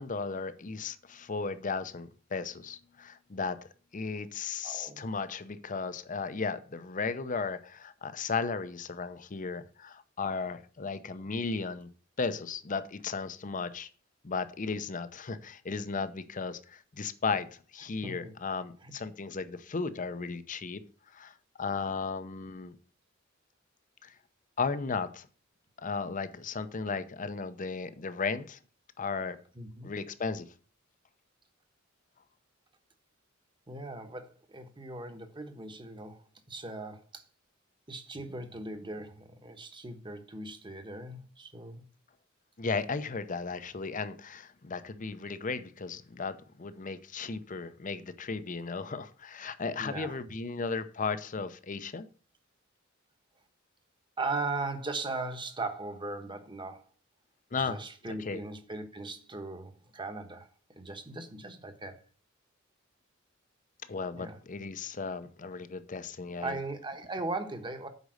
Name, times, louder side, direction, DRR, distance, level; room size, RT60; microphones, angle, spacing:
voice 1, 0.0-3.7 3.9-11.9 12.2-13.9 14.2-20.8 21.1-22.7 24.0-24.1 24.6-25.3 25.8-28.6 29.0-29.4 29.8-30.5 42.6-52.1 57.5-57.8 58.1-58.4 63.9-66.6, left 4 dB, 40° left, 0.7 m, -35 dB
voice 2, 4.6-5.1 18.0-18.3 18.8-18.9 29.5-29.9 33.7-37.2 37.9-41.8 49.8-50.2 54.2-56.8 57.5-60.5 60.8-62.0 64.1-64.4 66.4-67.9, right 3 dB, 25° right, 1.2 m, -38 dB
8.1 x 5.2 x 6.4 m
head